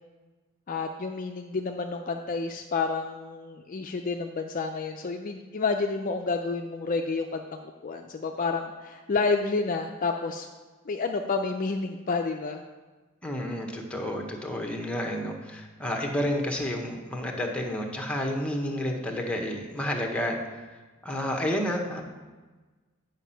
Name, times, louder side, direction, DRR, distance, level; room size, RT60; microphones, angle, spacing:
voice 1, 0.7-10.5 10.9-12.6, left 4 dB, 40° left, 4 dB, 0.4 m, -30 dB
voice 2, 13.2-20.4 21.0-22.0, equal, 5° left, 1 dB, 1.0 m, -30 dB
9.2 x 5.1 x 5.6 m, 1.3 s
head